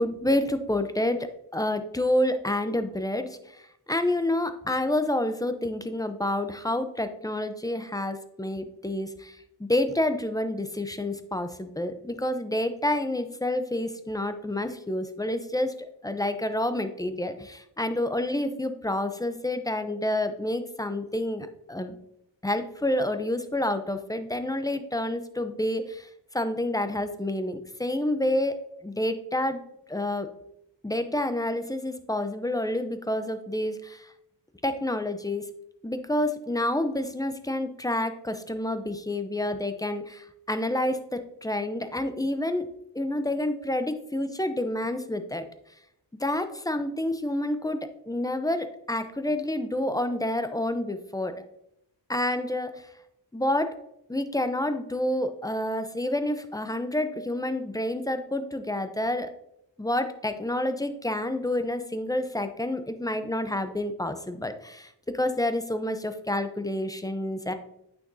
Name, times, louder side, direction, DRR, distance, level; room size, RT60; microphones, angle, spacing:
voice 1, 0.0-22.0 22.4-28.6 28.8-29.6 29.9-30.3 30.8-34.1 34.6-35.5 35.8-42.7 42.9-45.5 46.2-51.4 52.1-52.9 53.3-53.8 54.1-59.3 59.8-67.5, left 1 dB, 10° left, 9 dB, 0.6 m, -29 dB
9.0 x 6.1 x 2.7 m, 0.78 s
wide cardioid pair, 75°, 43 cm